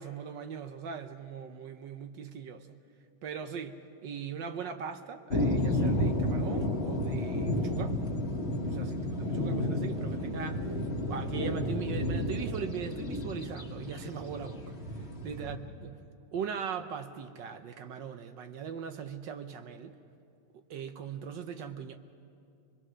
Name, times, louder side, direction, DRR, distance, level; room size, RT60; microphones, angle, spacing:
voice 1, 0.0-2.7 3.2-8.0 8.7-10.6 11.1-14.7 15.2-16.0 16.3-20.0 20.7-22.0, right 7 dB, 65° right, 8 dB, 1.3 m, -40 dB
sound 1, 5.3-15.6, left 1 dB, 30° left, 1.6 m, -31 dB
24.5 x 21.0 x 6.3 m, 2.5 s
omnidirectional pair, 2.4 m